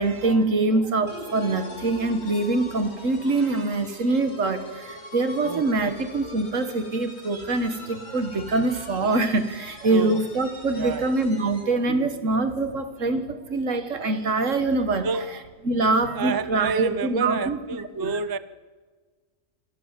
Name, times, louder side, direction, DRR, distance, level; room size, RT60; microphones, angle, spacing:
voice 1, 0.0-15.1 15.6-17.6 18.0-18.1, right 2 dB, 70° right, 9 dB, 1.9 m, -24 dB
sound 1, 1.1-11.8, left 2 dB, 50° left, 3.1 m, -43 dB
voice 2, 5.4-5.9 9.9-10.2 10.8-11.2 15.0-15.3 15.9-18.4, right 4 dB, 25° right, 14 dB, 0.5 m, -29 dB
26.5 x 14.0 x 7.5 m, 1.4 s
omnidirectional pair, 1.4 m